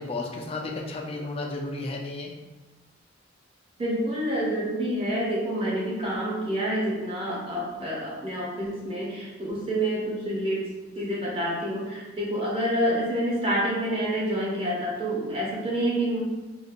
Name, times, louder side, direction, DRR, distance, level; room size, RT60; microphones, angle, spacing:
voice 1, 0.0-2.3, left 2 dB, 30° left, 1 dB, 0.4 m, -33 dB
voice 2, 3.8-10.7 11.0-16.2, right 1 dB, 30° right, -5 dB, 0.9 m, -28 dB
3.9 x 2.4 x 2.5 m, 1.2 s
head